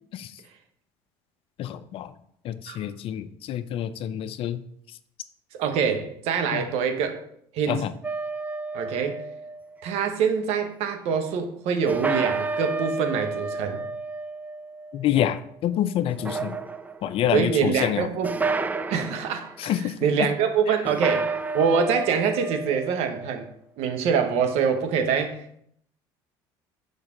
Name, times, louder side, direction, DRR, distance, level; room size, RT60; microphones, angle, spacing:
voice 1, 1.6-2.1 2.4-4.6 6.5-6.6 7.7-7.9 14.9-16.6 17.0-18.1 19.6-20.3, left 11 dB, 60° left, 13 dB, 0.5 m, -27 dB
voice 2, 5.5-7.2 7.5-7.8 8.7-9.2 9.8-13.8 17.3-18.4 18.9-23.5 23.8-25.6, right 6 dB, 70° right, 6 dB, 1.0 m, -25 dB
sound 1, 8.0-10.1 11.9-15.6 16.1-17.1 18.2-19.4 20.8-23.6, right 4 dB, 15° right, 0.4 m, -31 dB
6.3 x 5.2 x 3.7 m, 0.68 s
supercardioid pair, 80°, 11 cm